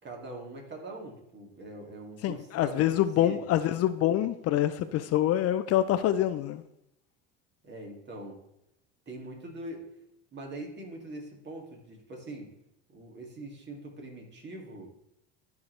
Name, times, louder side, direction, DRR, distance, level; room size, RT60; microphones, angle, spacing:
voice 1, 0.0-3.4 7.6-8.4 9.1-9.8 10.3-12.5 12.9-14.9, right 2 dB, 35° right, 2.3 m, -42 dB
voice 2, 2.2-6.6, left 12 dB, 50° left, 0.5 m, -26 dB
12.5 x 4.7 x 3.2 m
supercardioid pair, 105°, 32 cm